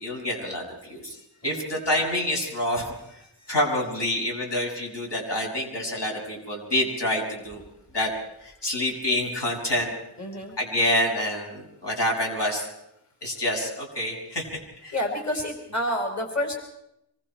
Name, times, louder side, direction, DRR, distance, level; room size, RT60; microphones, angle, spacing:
voice 1, 0.0-1.2 1.4-3.0 3.5-7.6 7.9-8.1 8.4-9.9 10.6-12.7 13.2-14.5 14.8-15.0, left 1 dB, 80° left, -1 dB, 7.4 m, -27 dB
voice 2, 1.1-1.7 3.4-3.5 10.2-10.5 14.9-16.5, left 1 dB, 40° left, 2 dB, 5.1 m, -29 dB
26.0 x 24.5 x 4.6 m, 0.81 s
wide cardioid pair, 70°, 41 cm